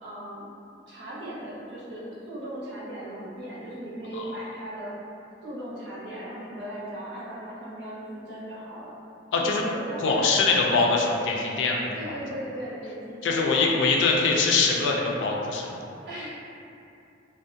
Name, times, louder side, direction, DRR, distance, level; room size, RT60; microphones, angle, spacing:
voice 1, 0.0-0.4 0.9-4.9 5.4-8.9 9.3-10.8 11.9-14.3 16.0-16.3, right 1 dB, 60° right, -9 dB, 0.7 m, -37 dB
voice 2, 10.0-11.9 13.2-15.6, left 4 dB, 70° left, -1 dB, 0.3 m, -23 dB
2.4 x 2.1 x 2.5 m, 2.6 s
head